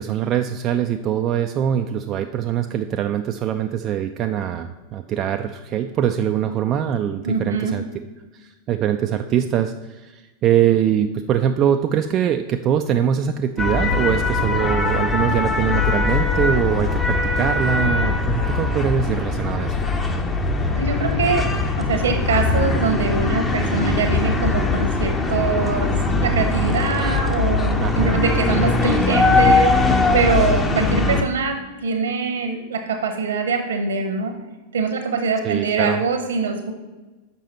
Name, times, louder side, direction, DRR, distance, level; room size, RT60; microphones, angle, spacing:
voice 1, 0.0-7.8 8.3-19.8 27.8-28.1 35.4-36.0, right 9 dB, 35° right, 6 dB, 0.3 m, -22 dB
voice 2, 7.2-7.7 20.7-21.4 21.8-34.3 34.7-36.7, right 4 dB, 65° right, 6 dB, 1.0 m, -23 dB
sound 1, 13.6-31.2, left 3 dB, 15° left, 0.7 m, -21 dB
6.7 x 5.4 x 4.2 m, 1.2 s
figure-of-eight pair, 90°, 0 cm